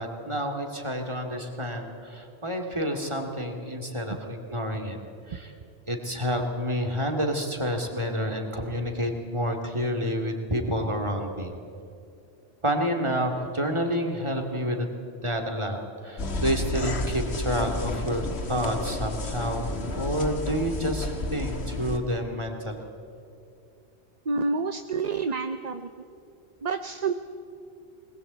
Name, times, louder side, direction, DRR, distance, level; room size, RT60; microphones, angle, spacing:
voice 1, 0.0-5.0 5.3-5.5 5.9-11.5 12.6-14.9 15.2-19.7 20.0-22.9, equal, 25° right, 3 dB, 2.5 m, -29 dB
sound 1, 16.2-22.0, left 2 dB, 70° left, 1.8 m, -31 dB
voice 2, 24.2-25.9 26.6-27.1, right 4 dB, 40° right, 8 dB, 0.8 m, -28 dB
21.5 x 20.0 x 8.2 m, 2.6 s
omnidirectional pair, 1.2 m